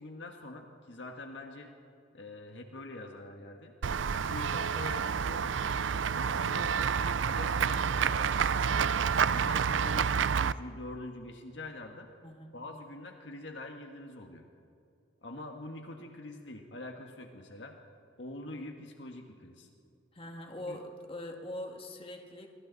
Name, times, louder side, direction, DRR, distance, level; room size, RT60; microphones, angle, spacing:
voice 1, 0.0-1.7 2.1-3.7 4.1-5.6 6.1-8.8 9.3-12.1 12.5-14.5 15.2-17.8 18.2-19.7 20.7-20.8, left 2 dB, 65° left, 3 dB, 1.6 m, -44 dB
Run / Walk footsteps / Bell, 3.8-10.5, right 6 dB, 70° right, 0.5 m, -29 dB
voice 2, 12.2-12.6 20.1-22.5, left 1 dB, 30° left, 2 dB, 2.1 m, -42 dB
26.0 x 24.5 x 4.1 m, 2.5 s
head